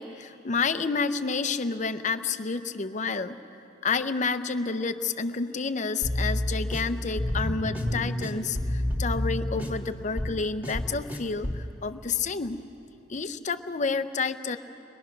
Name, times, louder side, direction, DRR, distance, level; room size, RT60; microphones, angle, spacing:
voice 1, 0.0-3.4 3.8-12.6 13.1-14.6, left 4 dB, 40° left, 10 dB, 0.6 m, -29 dB
sound 1, 6.0-11.7, left 1 dB, 10° right, 2.1 m, -30 dB
22.5 x 21.5 x 6.0 m, 2.9 s
head